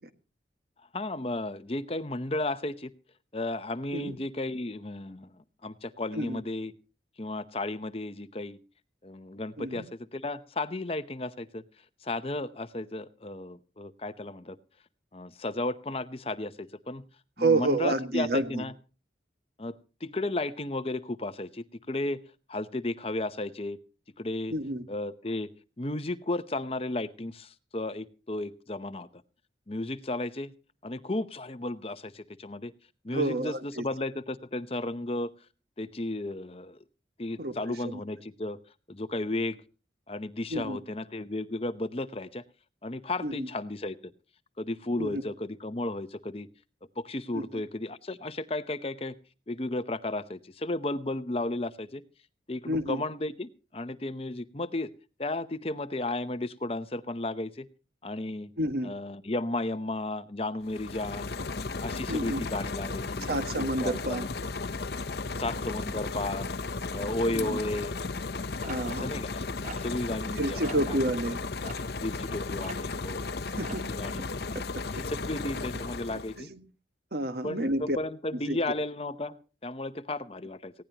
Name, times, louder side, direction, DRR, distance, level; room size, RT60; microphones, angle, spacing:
voice 1, 0.9-2.9 3.3-5.3 5.6-6.7 7.2-8.6 9.0-11.6 12.0-14.6 15.1-17.0 17.4-18.7 19.6-22.2 22.5-23.8 24.2-24.5 24.9-25.5 25.8-29.1 29.7-30.5 30.8-32.7 33.0-35.3 35.8-36.8 37.2-38.6 38.9-39.6 40.1-42.4 42.8-44.0 44.6-46.5 47.0-49.2 49.5-52.0 52.5-54.9 55.2-57.7 58.0-58.5 58.8-61.4 61.8-64.3 65.4-66.5 66.9-67.9 68.8-69.4 69.8-71.0 72.0-73.3 73.9-74.2 74.9-76.5 77.4-80.7, left 2 dB, 35° left, 13 dB, 0.8 m, -34 dB
voice 2, 17.4-18.6 24.5-24.8 33.1-33.8 37.4-38.0 40.5-40.8 43.2-43.5 45.0-45.2 47.3-47.6 52.7-53.0 58.6-58.9 62.1-62.4 63.3-64.2 67.3-67.6 68.6-69.1 70.4-71.4 73.6-73.9 74.2-74.3 74.5-74.6 76.4-76.6 77.1-78.0 78.3-78.6, right 1 dB, 60° right, 9 dB, 1.6 m, -30 dB
sound 1, 60.6-76.4, left 3 dB, 65° left, 0.7 m, -35 dB
sound 2, 68.6-70.3 70.6-70.9 71.6-73.0 73.3-73.9, right 3 dB, 45° right, 1.8 m, -44 dB
19.0 x 17.0 x 2.9 m, 0.33 s
head